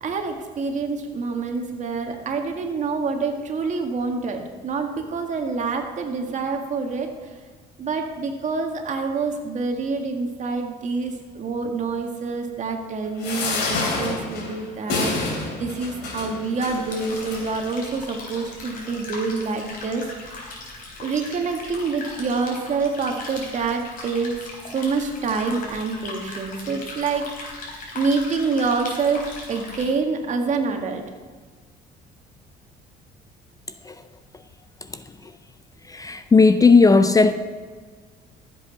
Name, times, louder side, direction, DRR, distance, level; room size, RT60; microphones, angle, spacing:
voice 1, 0.0-7.1 7.8-20.4 21.0-24.4 24.7-27.3 27.9-31.0, right 4 dB, 45° right, 1.9 m, -26 dB
sound 1, 13.2-17.7 18.4-18.5 18.8-18.9, left 3 dB, 80° left, 3.3 m, -28 dB
sound 2, 16.6-29.8, left 3 dB, 55° left, 4.1 m, -38 dB
voice 2, 35.9-37.3, left 4 dB, 20° left, 0.5 m, -15 dB
13.5 x 7.8 x 5.7 m
cardioid pair, 110°, 17 cm